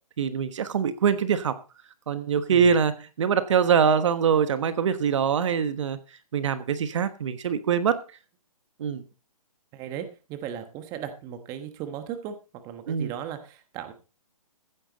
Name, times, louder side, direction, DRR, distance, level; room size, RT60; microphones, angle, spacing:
voice 1, 0.2-1.6 2.1-6.0 6.3-8.0 8.8-9.0 12.9-13.1, right 7 dB, 50° right, 12 dB, 1.2 m, -23 dB
voice 2, 9.7-12.4 12.6-13.9, right 9 dB, 20° right, 9 dB, 1.3 m, -37 dB
15.0 x 10.5 x 4.1 m, 0.33 s
hypercardioid pair, 160°, 20 cm